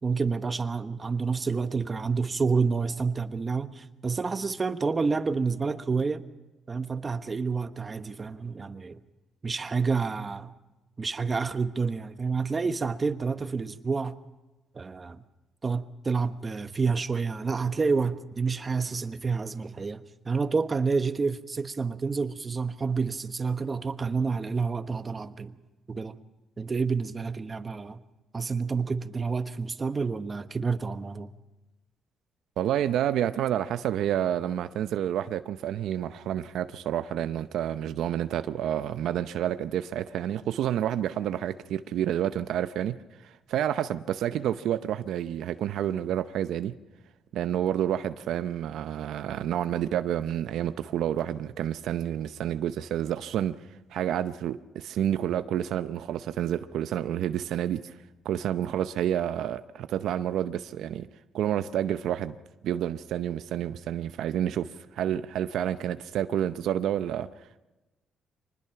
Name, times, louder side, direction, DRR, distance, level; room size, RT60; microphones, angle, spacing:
voice 1, 0.0-6.2 6.7-9.0 9.4-10.5 11.0-14.2 14.7-15.2 15.6-25.5 25.9-26.2 26.6-28.0 28.3-31.3, right 4 dB, 30° right, 1.1 m, -29 dB
voice 2, 32.6-46.8 47.3-53.6 53.9-58.0 58.2-61.1 61.3-62.4 62.6-67.3, right 10 dB, 80° right, 0.7 m, -29 dB
24.5 x 20.0 x 5.8 m
cardioid pair, 90°, 0 cm